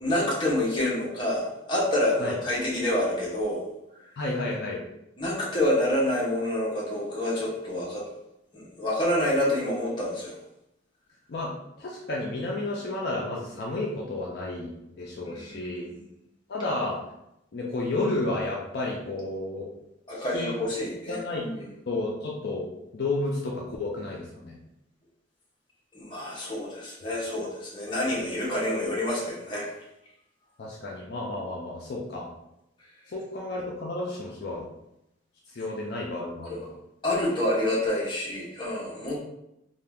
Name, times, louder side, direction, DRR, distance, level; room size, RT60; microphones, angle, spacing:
voice 1, 0.0-3.6 3.9-4.0 5.2-8.1 8.5-10.3 15.2-16.0 20.1-21.7 25.9-29.7 36.5-36.6 37.0-39.2, left 1 dB, 25° left, -6 dB, 0.8 m, -28 dB
voice 2, 4.2-4.8 11.3-11.5 11.8-15.8 16.5-17.0 17.5-19.7 20.2-20.6 21.1-21.5 21.9-22.7 22.9-24.6 30.6-32.3 33.1-34.7 35.5-36.6, left 2 dB, 55° left, -3 dB, 0.4 m, -31 dB
2.7 x 2.3 x 3.3 m, 0.84 s
head